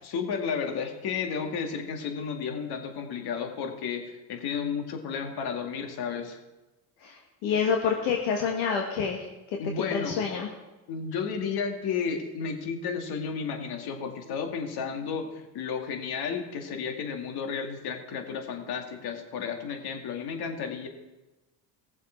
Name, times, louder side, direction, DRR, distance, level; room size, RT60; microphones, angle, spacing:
voice 1, 0.0-6.4 9.6-10.2 10.9-20.9, left 6 dB, 60° left, 4 dB, 2.1 m, -32 dB
voice 2, 7.0-9.2 9.9-10.5, left 6 dB, 75° left, 1 dB, 1.6 m, -27 dB
18.0 x 7.2 x 4.4 m, 1.1 s
supercardioid pair, 95°, 42 cm